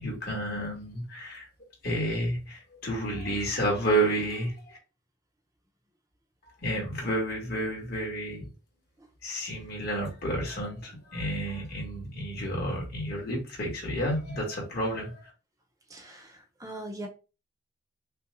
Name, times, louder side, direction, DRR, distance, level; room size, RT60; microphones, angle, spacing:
voice 1, 0.0-1.5 1.8-4.8 6.6-8.5 9.2-15.3, right 1 dB, 55° left, -2 dB, 1.9 m, -30 dB
voice 2, 15.9-16.3 16.6-17.1, right 1 dB, 15° right, 1 dB, 0.7 m, -40 dB
5.5 x 2.3 x 2.5 m, 0.32 s
head